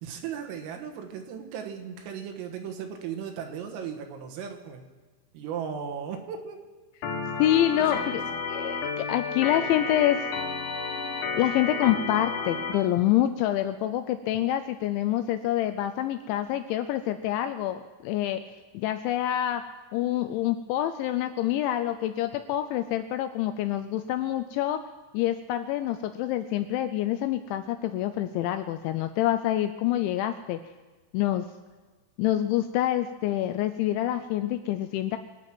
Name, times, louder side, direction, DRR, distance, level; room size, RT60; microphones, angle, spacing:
voice 1, 0.0-4.9 5.3-6.6 7.9-8.1, right 7 dB, 85° right, 5 dB, 4.0 m, -36 dB
Organ, 7.0-12.7, left 4 dB, 70° left, 3.6 m, -31 dB
voice 2, 7.4-8.2 8.5-10.3 11.4-19.6 19.9-24.9 25.1-30.6 31.1-31.5 32.2-35.2, left 12 dB, 85° left, 8 dB, 2.6 m, -27 dB
25.0 x 9.0 x 6.1 m, 1.3 s
omnidirectional pair, 5.9 m